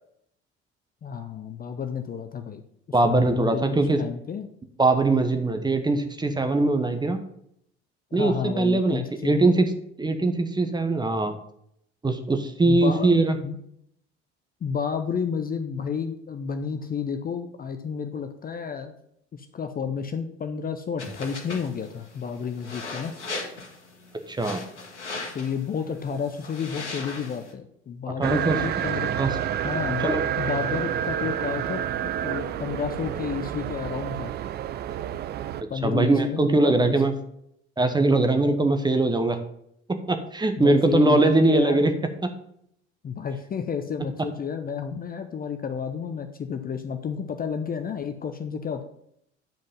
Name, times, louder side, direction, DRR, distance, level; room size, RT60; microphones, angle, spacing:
voice 1, 1.0-2.6 2.9-4.5 8.1-9.5 12.6-13.1 13.4-13.6 14.6-18.9 19.3-23.1 25.3-29.2 29.6-31.8 32.2-34.3 35.7-37.0 40.6-41.8 43.0-48.8, left 6 dB, 25° left, 7 dB, 0.7 m, -31 dB
voice 2, 2.9-4.0 4.8-7.2 8.1-9.7 10.0-11.4 12.0-13.4 24.3-24.6 28.2-28.6 29.2-29.3 30.0-30.2 35.8-37.1 37.8-39.4 40.1-41.9 42.2-42.3, right 2 dB, 10° right, 7 dB, 1.0 m, -21 dB
sound 1, 21.0-27.5, left 3 dB, 80° left, 1.4 m, -38 dB
sound 2, 28.2-35.6, right 10 dB, 30° right, 0.4 m, -29 dB
9.0 x 5.2 x 5.4 m, 0.73 s
figure-of-eight pair, 60°, 34 cm